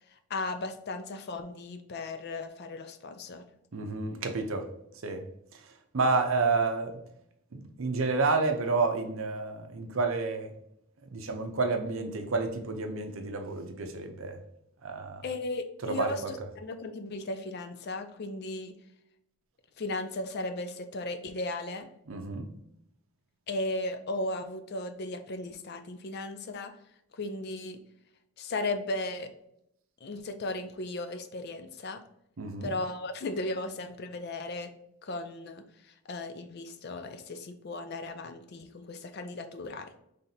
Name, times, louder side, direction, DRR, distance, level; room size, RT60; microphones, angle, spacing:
voice 1, 0.3-3.4 15.2-18.8 19.8-21.9 23.5-26.8 27.1-27.8 28.4-29.3 30.0-32.0 32.6-34.7 35.0-35.6 36.1-40.0, left 2 dB, 45° left, 0.4 m, -36 dB
voice 2, 3.7-4.7 5.0-5.2 5.9-7.0 7.5-10.5 11.1-14.4 14.8-15.2 15.8-16.3 22.1-22.5 32.4-32.7, right 3 dB, 60° right, 0.6 m, -30 dB
5.7 x 3.3 x 2.7 m
head